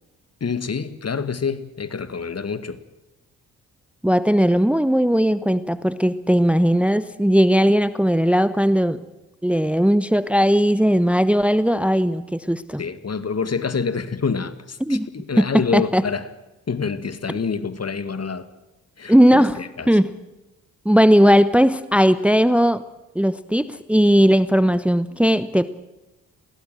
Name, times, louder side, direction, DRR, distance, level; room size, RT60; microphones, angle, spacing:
voice 1, 0.4-2.8 12.8-16.2 16.7-18.5 19.0-19.9, left 5 dB, 40° left, 2.0 m, -27 dB
voice 2, 4.0-9.0 9.4-12.8 14.9-15.1 15.4-16.0 19.1-20.1 20.8-22.8 23.1-25.7, equal, 5° right, 1.1 m, -18 dB
22.0 x 17.5 x 7.7 m
hypercardioid pair, 45°, 39 cm